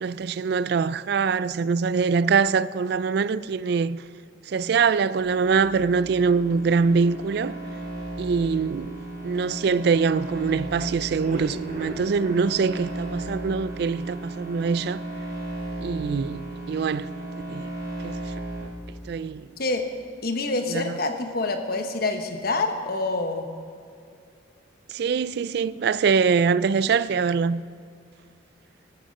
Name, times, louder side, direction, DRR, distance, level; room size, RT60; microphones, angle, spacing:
voice 1, 0.0-4.0 4.5-7.6 8.2-8.9 9.2-15.0 15.8-17.1 17.5-17.7 18.0-18.2 19.1-19.5 20.7-20.9 24.9-27.6, right 5 dB, 55° right, 0.3 m, -23 dB
sound 1, 5.3-18.6, right 1 dB, 20° right, 4.1 m, -35 dB
sound 2, 11.2-14.2 14.6-14.7 15.0-15.1 15.5-15.6, left 1 dB, 40° right, 2.9 m, -39 dB
voice 2, 20.2-23.5, left 3 dB, 50° left, 1.1 m, -26 dB
15.0 x 10.0 x 5.3 m
head